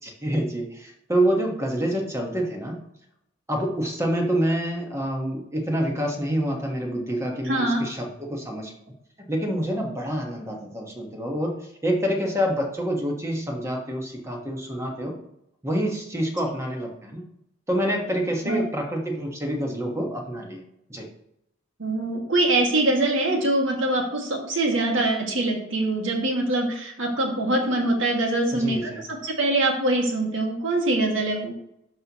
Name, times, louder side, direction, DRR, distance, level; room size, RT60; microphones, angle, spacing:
voice 1, 0.0-2.8 3.5-8.7 9.3-15.2 15.6-17.2 17.7-20.6 20.9-21.1 28.6-29.0, equal, 15° right, 1 dB, 1.4 m, -27 dB
voice 2, 7.5-7.8 18.4-18.6 21.8-31.5, right 2 dB, 75° right, 0 dB, 2.0 m, -23 dB
12.0 x 5.5 x 3.0 m, 0.78 s
head